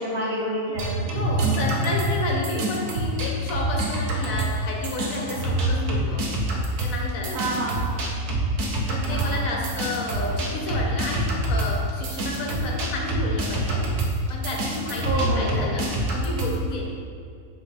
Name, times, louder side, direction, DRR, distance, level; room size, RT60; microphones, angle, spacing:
voice 1, 0.0-1.2 7.3-8.0 9.1-9.5 10.2-10.4 15.0-15.7, right 1 dB, 65° right, -5 dB, 1.7 m, -29 dB
sound 1, 0.8-4.6 4.8-16.6, right 1 dB, 85° right, 1.5 m, -26 dB
voice 2, 1.0-6.4 6.8-7.7 8.9-13.9 14.3-17.0, left 2 dB, 65° left, 0 dB, 1.3 m, -31 dB
8.6 x 3.8 x 4.1 m, 2.3 s
omnidirectional pair, 1.6 m